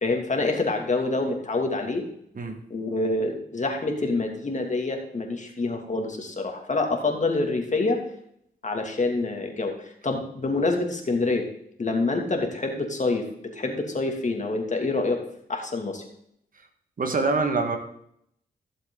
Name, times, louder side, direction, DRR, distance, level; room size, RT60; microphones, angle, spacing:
voice 1, 0.0-2.0 2.7-8.0 8.6-11.5 11.8-15.2 15.5-16.1, left 3 dB, 45° left, 2 dB, 2.6 m, -26 dB
voice 2, 17.0-17.8, right 3 dB, 50° right, 5 dB, 1.8 m, -24 dB
15.0 x 7.3 x 3.9 m, 0.72 s
cardioid pair, 60°, 18 cm